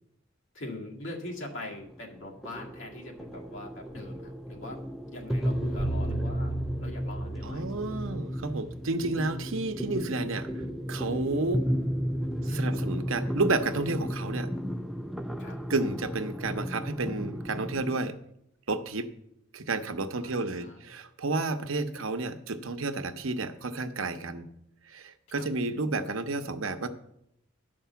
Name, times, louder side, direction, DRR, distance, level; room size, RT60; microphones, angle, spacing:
voice 1, 0.5-4.8 5.1-7.6 12.4-12.8 15.4-15.6 20.2-20.9 25.3-25.5, left 1 dB, 65° left, -1 dB, 1.9 m, -42 dB
sound 1, 1.2-18.0, equal, ahead, 0.5 m, -34 dB
sound 2, 5.3-9.5, right 2 dB, 25° left, 3.1 m, -37 dB
voice 2, 7.4-10.5 10.9-11.6 12.5-14.5 15.7-18.2 18.7-19.1 19.5-24.5 24.8-26.9, right 3 dB, 85° right, 8 dB, 0.8 m, -31 dB
10.0 x 5.3 x 6.9 m, 0.76 s
head